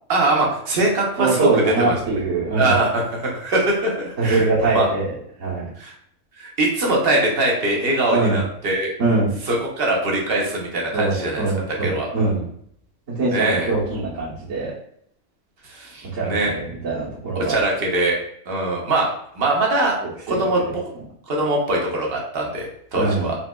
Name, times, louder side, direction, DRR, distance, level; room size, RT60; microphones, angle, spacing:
voice 1, 0.1-2.0 2.6-4.9 5.8-5.9 6.4-8.9 9.5-11.4 11.8-12.1 13.3-13.7 15.7-16.5 17.3-18.2 18.5-19.9 20.3-20.6 21.3-23.4, right 2 dB, 55° right, -1 dB, 0.9 m, -22 dB
voice 2, 1.2-2.8 4.2-5.1 5.4-5.7 8.1-8.4 9.0-9.3 10.9-12.4 13.1-14.7 16.1-17.6 20.0-20.7 22.9-23.3, right 3 dB, 80° right, -11 dB, 1.5 m, -23 dB
4.1 x 2.6 x 2.2 m, 0.67 s
omnidirectional pair, 1.3 m